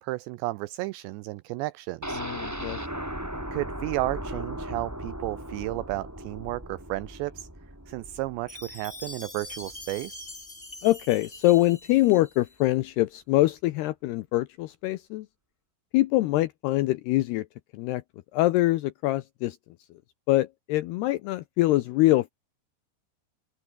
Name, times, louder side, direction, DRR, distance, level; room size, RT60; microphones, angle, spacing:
voice 1, 0.0-2.2 3.5-7.5 7.9-10.3, right 19 dB, 85° right, 2.5 m, -33 dB
sound 1, 2.0-9.9 10.2-10.3 10.7-10.8, right 1 dB, 5° right, 3.2 m, -37 dB
voice 2, 2.2-2.8 10.8-15.3 15.9-17.5 17.7-18.0 18.3-19.6 20.3-22.3, left 17 dB, 85° left, 2.4 m, -24 dB
Chime, 8.5-12.6, left 2 dB, 10° left, 3.3 m, -43 dB
open air
omnidirectional pair, 5.6 m